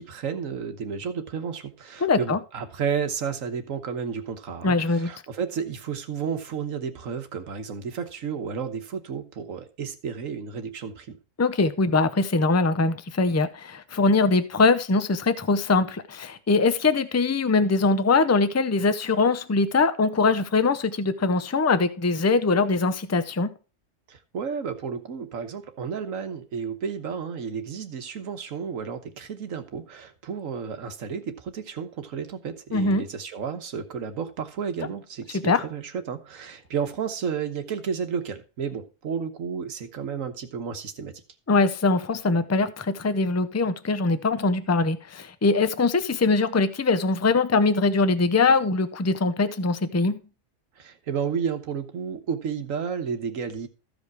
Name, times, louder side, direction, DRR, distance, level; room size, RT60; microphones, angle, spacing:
voice 1, 0.0-11.2 24.1-41.1 50.8-53.7, right 6 dB, 90° right, 1.5 m, -32 dB
voice 2, 2.0-2.4 4.6-5.1 11.4-23.5 32.7-33.0 35.3-35.6 41.5-50.2, left 3 dB, 20° left, 0.5 m, -22 dB
14.0 x 5.2 x 4.7 m
omnidirectional pair, 1.3 m